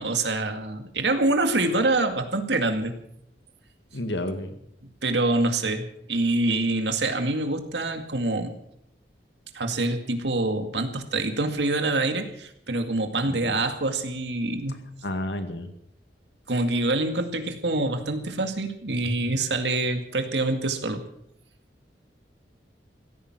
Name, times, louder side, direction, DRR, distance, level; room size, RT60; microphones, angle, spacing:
voice 1, 0.0-2.9 5.0-8.5 9.5-14.8 16.5-21.0, right 2 dB, 80° right, 6 dB, 2.1 m, -25 dB
voice 2, 3.9-4.5 13.2-13.6 15.0-15.7, left 1 dB, 85° left, 7 dB, 2.1 m, -31 dB
16.0 x 14.0 x 6.2 m, 0.71 s
head